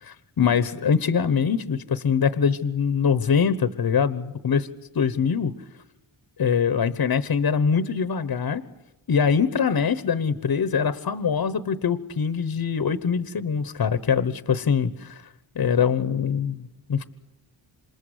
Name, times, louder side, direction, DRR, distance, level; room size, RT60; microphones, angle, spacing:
voice 1, 0.0-4.7 4.9-5.5 6.4-8.6 9.1-15.2 15.5-17.0, left 6 dB, 50° left, 13 dB, 1.1 m, -23 dB
27.0 x 27.0 x 8.0 m, 0.92 s
wide cardioid pair, 115°, 47 cm